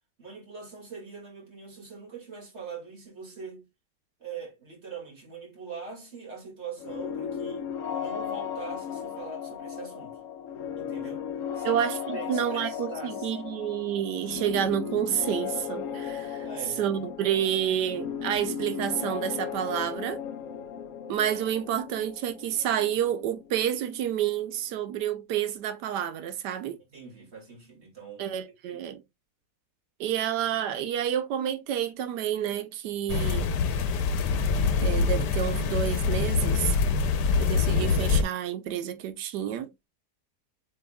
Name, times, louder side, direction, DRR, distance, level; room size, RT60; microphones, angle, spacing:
voice 1, 0.2-3.7 4.2-10.2 10.8-11.3 11.5-11.8 12.1-13.3 16.4-16.8 26.9-28.3 28.7-28.8, right 5 dB, 40° right, 2.3 m, -42 dB
sound 1, 6.8-24.4, left 8 dB, 65° left, 0.9 m, -36 dB
voice 2, 11.6-16.5 16.8-20.2 21.1-26.8 28.2-29.0 30.0-33.6 34.8-36.8 37.4-39.7, right 10 dB, 90° right, 1.3 m, -29 dB
sound 2, 33.1-38.2, left 5 dB, 80° left, 1.3 m, -25 dB
7.6 x 3.0 x 2.2 m
omnidirectional pair, 1.8 m